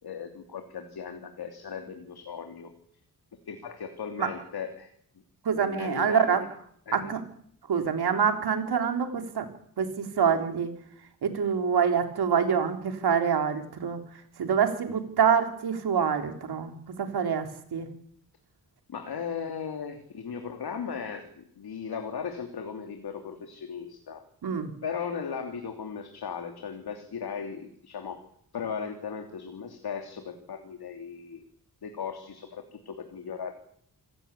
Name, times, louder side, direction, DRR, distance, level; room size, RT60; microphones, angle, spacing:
voice 1, 0.0-2.7 3.5-4.9 5.6-6.5 6.9-7.2 18.9-24.2 24.8-28.2 28.5-31.4 31.8-33.5, left 6 dB, 80° left, 5 dB, 3.1 m, -37 dB
voice 2, 5.5-6.4 6.9-7.2 7.7-9.5 9.8-10.7 11.2-14.0 14.4-17.9 24.4-24.7, right 7 dB, 85° right, 6 dB, 3.8 m, -26 dB
27.5 x 16.5 x 8.5 m, 0.66 s
wide cardioid pair, 95°, 38 cm